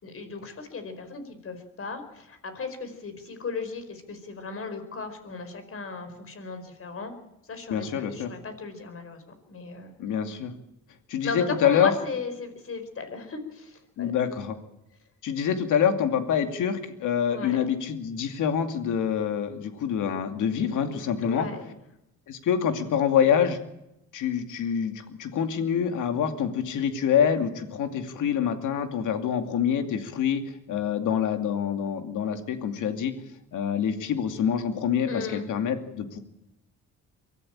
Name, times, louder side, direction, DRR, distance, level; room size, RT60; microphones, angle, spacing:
voice 1, 0.0-7.1 7.5-9.2 9.5-9.9 11.2-14.1 17.3-17.6 21.2-21.7 35.1-35.5, left 4 dB, 45° left, 9 dB, 4.9 m, -35 dB
voice 2, 7.7-8.3 10.0-10.5 11.1-11.9 14.0-14.6 15.2-21.5 22.3-23.6 24.1-30.4 30.7-33.1 33.5-36.2, left 8 dB, 80° left, 7 dB, 2.6 m, -26 dB
23.5 x 14.0 x 8.9 m, 0.87 s
cardioid pair, 90°, 30 cm